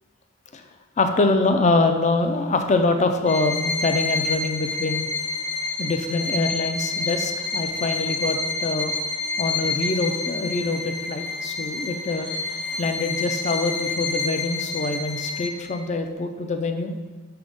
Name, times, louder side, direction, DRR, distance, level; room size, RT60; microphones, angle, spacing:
voice 1, 1.0-5.1 5.8-9.0 9.4-12.3 12.8-16.9, left 3 dB, 35° left, 6 dB, 0.4 m, -24 dB
Bowed string instrument, 3.3-15.8, left 3 dB, 60° left, 1.2 m, -28 dB
6.1 x 3.5 x 5.1 m, 1.3 s
head